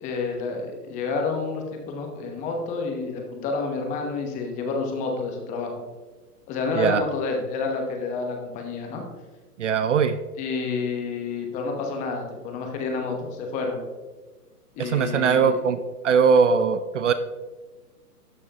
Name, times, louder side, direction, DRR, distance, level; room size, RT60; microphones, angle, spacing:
voice 1, 0.0-5.7 6.5-9.0 10.4-13.8 14.7-15.6, left 4 dB, 15° left, 2 dB, 0.9 m, -29 dB
voice 2, 9.6-10.2 14.8-15.8 16.0-17.1, right 6 dB, 50° right, 12 dB, 0.6 m, -20 dB
12.5 x 6.5 x 2.9 m, 1.2 s
hypercardioid pair, 140°, 47 cm